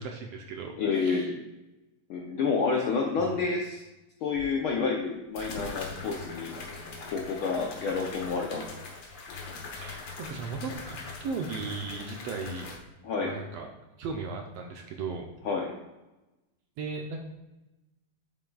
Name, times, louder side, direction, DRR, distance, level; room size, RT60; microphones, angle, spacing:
voice 1, 0.0-1.3 3.2-3.4 9.7-12.7 13.2-13.7 14.0-15.2 16.8-17.2, right 4 dB, 70° right, 3 dB, 1.6 m, -37 dB
voice 2, 0.8-1.4 2.1-3.8 4.2-6.5 7.1-8.7 13.0-13.3 15.4-15.7, left 4 dB, 75° left, 0 dB, 1.2 m, -29 dB
sound 1, 4.4-4.5 5.4-12.8, left 4 dB, 55° left, 1.5 m, -41 dB
9.2 x 7.8 x 2.3 m, 1.0 s
omnidirectional pair, 3.3 m